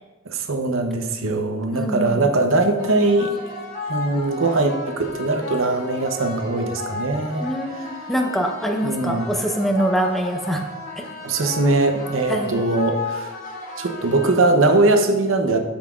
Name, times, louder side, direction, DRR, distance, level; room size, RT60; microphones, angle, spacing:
voice 1, 0.3-3.3 3.9-7.5 7.8-7.9 8.8-9.3 11.2-13.3 13.8-15.6, right 2 dB, 65° right, 5 dB, 0.8 m, -21 dB
voice 2, 1.7-2.2 7.4-10.6 11.0-11.1 12.3-12.5, right 1 dB, ahead, 1 dB, 0.7 m, -24 dB
sound 1, 2.8-14.8, left 3 dB, 70° left, 2.1 m, -34 dB
13.0 x 5.7 x 2.4 m, 1.2 s
head